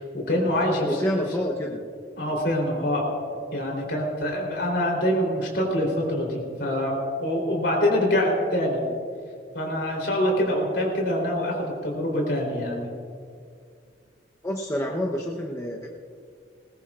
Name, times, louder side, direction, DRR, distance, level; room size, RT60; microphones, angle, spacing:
voice 1, 0.0-0.9 2.2-3.0 3.5-6.9 7.2-8.8 9.5-12.9, left 1 dB, 65° left, -1 dB, 3.6 m, -25 dB
voice 2, 0.6-1.8 14.4-15.9, equal, 15° left, -2 dB, 0.9 m, -28 dB
20.5 x 20.0 x 2.5 m, 2.2 s
head